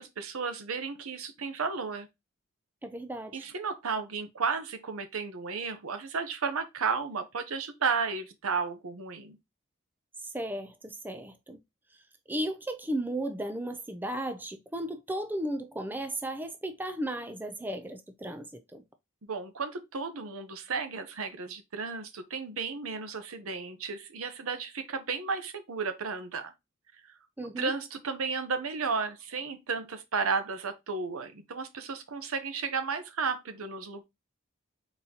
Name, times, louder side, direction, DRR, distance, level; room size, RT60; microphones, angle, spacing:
voice 1, 0.0-2.1 3.3-9.4 19.2-26.5 27.0-27.1 27.6-34.0, right 5 dB, 85° right, 0.8 m, -33 dB
voice 2, 2.8-3.5 10.2-11.6 12.3-18.8 27.4-27.7, right 1 dB, 10° right, 0.3 m, -35 dB
4.1 x 3.8 x 2.8 m
head